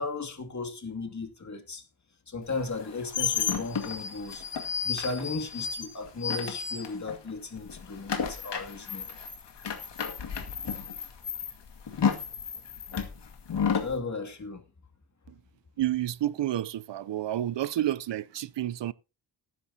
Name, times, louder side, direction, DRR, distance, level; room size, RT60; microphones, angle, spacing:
voice 1, 0.0-1.8 2.3-4.4 4.8-9.1 13.7-14.6, left 3 dB, 40° left, 2.5 m, -35 dB
sound 1, 2.7-7.3 7.6-13.9, left 7 dB, 65° left, 2.3 m, -32 dB
voice 2, 15.8-18.9, right 13 dB, 70° right, 0.6 m, -30 dB
18.5 x 10.0 x 2.8 m
wide cardioid pair, 105°, 45 cm